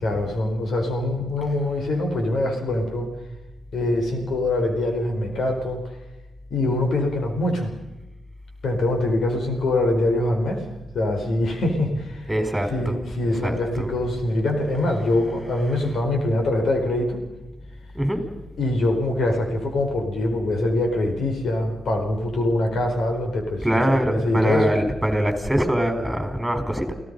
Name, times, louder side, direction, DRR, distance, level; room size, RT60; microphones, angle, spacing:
voice 1, 0.0-3.1 3.7-5.8 6.5-7.7 8.6-10.6 10.9-12.2 12.7-17.2 18.6-24.7, left 1 dB, 75° left, 3 dB, 4.5 m, -24 dB
voice 2, 12.3-13.0 13.4-13.9 17.9-18.2 23.6-26.9, equal, 5° right, 6 dB, 4.6 m, -23 dB
29.5 x 16.5 x 5.5 m, 1.0 s
cardioid pair, 65°, 0 cm